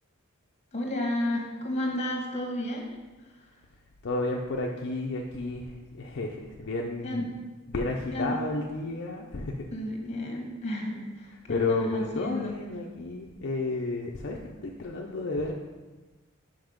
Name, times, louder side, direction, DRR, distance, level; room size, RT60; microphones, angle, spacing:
voice 1, 0.7-2.9 7.0-7.2 8.1-8.4 9.7-12.5, left 1 dB, 35° left, 0 dB, 1.4 m, -32 dB
voice 2, 4.0-7.3 7.7-9.6 11.5-15.5, left 2 dB, 55° left, 0 dB, 0.6 m, -32 dB
5.8 x 5.3 x 5.1 m, 1.3 s
head